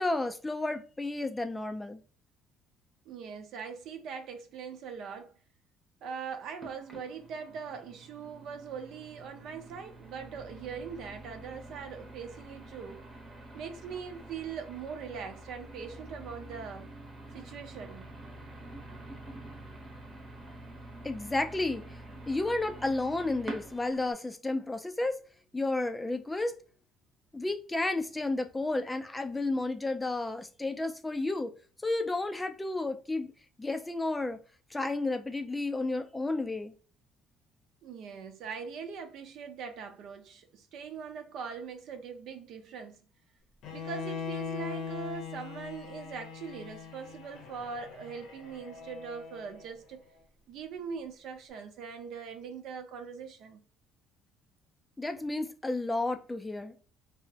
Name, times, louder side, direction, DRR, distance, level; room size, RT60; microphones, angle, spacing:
voice 1, 0.0-2.0 21.0-22.0 22.3-25.2 25.5-26.6 27.3-31.5 31.8-33.3 33.6-34.4 34.7-36.7 55.0-56.7, left 2 dB, 10° left, 0.3 m, -32 dB
voice 2, 3.1-5.3 6.0-13.1 13.5-16.9 17.3-18.1 37.8-43.0 43.7-50.1 50.5-53.6, right 6 dB, 65° right, 0.5 m, -41 dB
sound 1, 6.6-24.1, right 1 dB, 25° right, 0.7 m, -47 dB
Bowed string instrument, 43.6-49.7, left 6 dB, 70° left, 0.6 m, -41 dB
2.9 x 2.0 x 2.7 m
cardioid pair, 115°, 0 cm